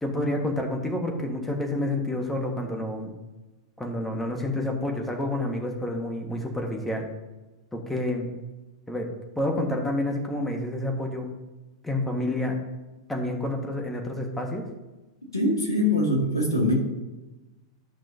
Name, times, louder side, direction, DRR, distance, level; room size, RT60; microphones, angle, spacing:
voice 1, 0.0-3.1 3.8-7.1 7.7-8.3 8.9-9.1 9.3-11.3 11.8-12.6 13.1-14.6, left 1 dB, 5° left, 2 dB, 1.6 m, -29 dB
voice 2, 15.3-16.7, left 1 dB, 85° left, -2 dB, 2.3 m, -23 dB
12.5 x 6.0 x 2.8 m, 1.1 s
figure-of-eight pair, 95°, 2 cm